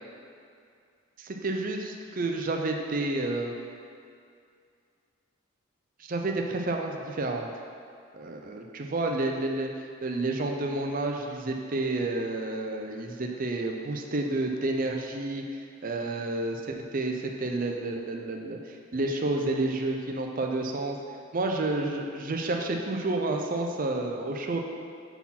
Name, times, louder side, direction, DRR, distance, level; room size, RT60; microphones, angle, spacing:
voice 1, 1.2-3.5 6.0-7.5 8.1-9.7 10.0-21.0 21.3-24.6, right 2 dB, 40° right, 2 dB, 0.5 m, -30 dB
5.6 x 4.2 x 5.8 m, 2.4 s
head